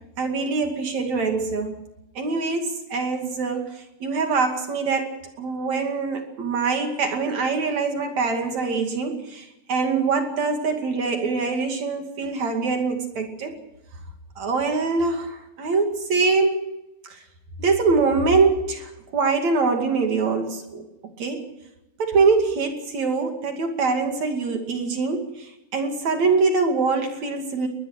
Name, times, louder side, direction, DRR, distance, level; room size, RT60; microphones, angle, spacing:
voice 1, 0.2-1.8 2.1-13.6 14.4-16.8 17.1-17.2 17.6-20.8 21.2-21.5 22.0-27.7, right 4 dB, 45° right, 4 dB, 2.8 m, -24 dB
21.0 x 21.0 x 6.6 m, 0.89 s
omnidirectional pair, 6.0 m